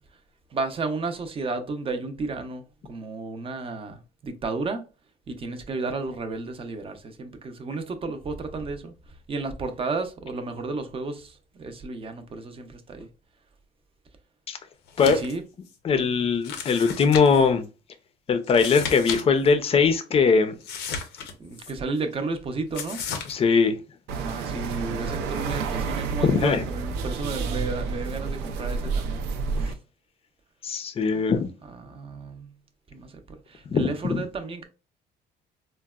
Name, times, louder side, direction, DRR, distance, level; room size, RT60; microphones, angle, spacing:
voice 1, 0.5-4.8 5.3-8.9 9.3-13.1 15.0-15.4 21.4-23.0 24.2-29.2 29.6-29.7 31.1-31.2 31.7-32.6 32.9-34.6, right 3 dB, 35° right, 0.6 m, -33 dB
sound 1, 14.9-15.4 15.7-15.8 16.4-17.5 18.4-19.2 19.5-19.6 20.6-21.7 22.7-23.3, left 6 dB, 80° left, 0.6 m, -34 dB
voice 2, 15.8-17.7 18.3-20.5 23.3-23.8 26.2-26.7 30.6-31.5 33.7-33.9, left 5 dB, 35° left, 0.5 m, -21 dB
sound 2, 24.1-29.7, right 4 dB, 85° right, 0.5 m, -30 dB
3.9 x 2.1 x 2.3 m
cardioid pair, 110°, 17 cm